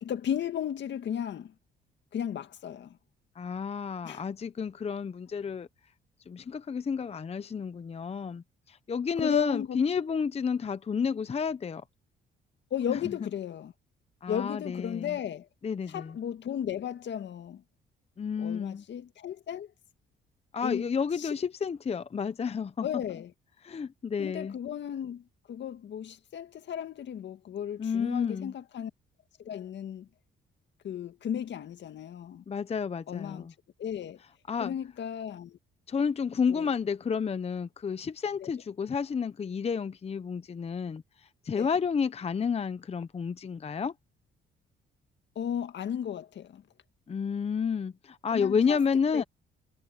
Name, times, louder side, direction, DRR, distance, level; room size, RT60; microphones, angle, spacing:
voice 1, 0.0-1.5 2.1-3.0 4.0-4.2 9.2-9.8 12.7-13.7 14.3-15.5 15.9-17.6 18.4-19.7 20.6-20.9 21.2-21.3 22.8-23.3 24.2-28.9 29.4-30.1 30.8-32.4 33.1-33.5 33.8-34.2 34.6-35.6 36.5-36.7 38.4-38.5 41.6-41.7 45.4-46.6 48.3-48.8 49.1-49.2, left 9 dB, 65° left, 1.9 m, -35 dB
voice 2, 3.4-5.7 6.3-11.8 12.9-13.1 14.2-15.2 15.6-16.2 18.2-18.8 20.5-23.0 23.6-24.6 27.8-28.5 32.5-33.5 34.5-34.7 35.9-43.9 47.1-49.2, left 6 dB, 30° left, 0.7 m, -30 dB
cardioid pair, 90°, 20 cm